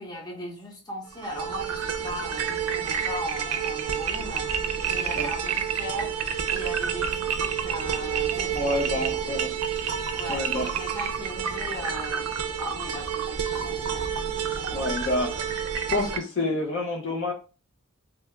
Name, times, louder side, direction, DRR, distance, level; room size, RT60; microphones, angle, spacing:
voice 1, 0.0-6.1 6.5-9.2 10.1-14.0, equal, 20° left, -2 dB, 0.9 m, -38 dB
sound 1, 1.1-16.2, right 7 dB, 85° right, 0.4 m, -29 dB
voice 2, 8.5-9.5 10.3-10.6 14.7-15.5 15.9-17.3, left 2 dB, 55° left, 1 dB, 0.6 m, -28 dB
3.3 x 2.3 x 3.1 m, 0.34 s
head